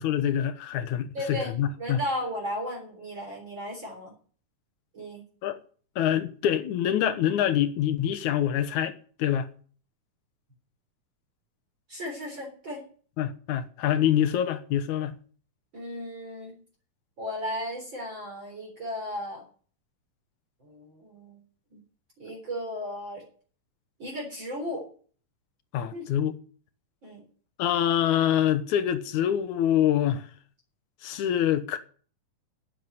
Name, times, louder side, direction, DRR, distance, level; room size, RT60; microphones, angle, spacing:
voice 1, 0.0-2.0 5.4-5.6 6.0-9.5 13.2-15.1 25.7-26.3 27.6-30.3 31.0-31.8, left 10 dB, 70° left, 2.4 m, -25 dB
voice 2, 1.1-4.1 4.9-5.2 11.9-12.8 15.7-16.6 17.2-19.4 20.6-21.4 21.7-21.8 22.2-23.2 24.0-24.9 25.9-26.1 27.0-27.2, left 1 dB, 35° right, 4.3 m, -35 dB
10.0 x 9.3 x 9.5 m
omnidirectional pair, 3.8 m